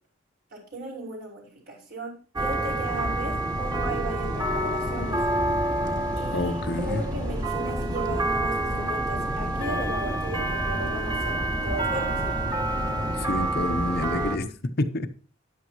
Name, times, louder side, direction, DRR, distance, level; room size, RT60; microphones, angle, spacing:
voice 1, 0.5-5.2 6.2-12.4, right 2 dB, 55° right, 5.9 m, -36 dB
sound 1, 2.4-14.4, right 1 dB, 20° right, 2.2 m, -27 dB
voice 2, 6.3-7.0 13.1-15.1, left 2 dB, 55° left, 0.9 m, -29 dB
13.0 x 10.5 x 3.0 m
head